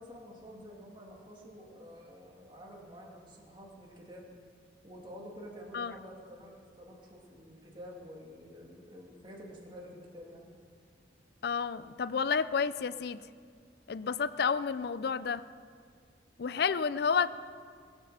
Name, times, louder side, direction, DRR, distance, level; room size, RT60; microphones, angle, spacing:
voice 1, 0.0-4.3 4.8-10.5, equal, 25° right, -2 dB, 2.2 m, -49 dB
voice 2, 11.4-13.2 13.9-15.4 16.4-17.3, left 6 dB, 60° left, 16 dB, 0.4 m, -30 dB
21.5 x 8.2 x 6.7 m, 2.1 s
head